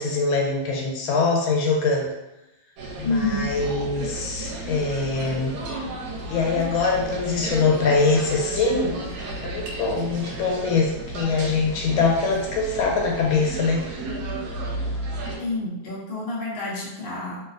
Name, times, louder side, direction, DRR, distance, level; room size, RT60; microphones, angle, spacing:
voice 1, 0.0-2.1 3.0-5.6 6.3-8.9 9.4-13.8, left 4 dB, 85° left, 0 dB, 1.5 m, -23 dB
sound 1, 2.8-15.4, right 1 dB, 80° right, 1.4 m, -33 dB
voice 2, 3.0-3.5 15.4-17.4, left 2 dB, 50° left, -5 dB, 0.6 m, -28 dB
3.1 x 2.9 x 2.4 m, 0.93 s
omnidirectional pair, 2.2 m